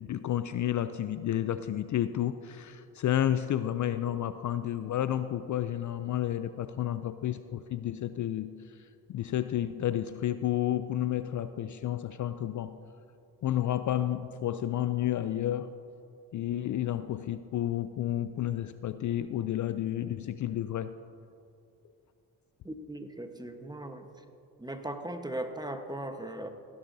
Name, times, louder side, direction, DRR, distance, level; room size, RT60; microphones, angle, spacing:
voice 1, 0.0-8.6 9.1-12.8 13.4-15.7 16.3-20.9, left 11 dB, 50° left, 12 dB, 0.4 m, -31 dB
voice 2, 22.6-24.0 24.6-26.5, right 1 dB, 10° right, 6 dB, 1.1 m, -38 dB
16.5 x 10.0 x 2.7 m, 2.6 s
supercardioid pair, 50°, 39 cm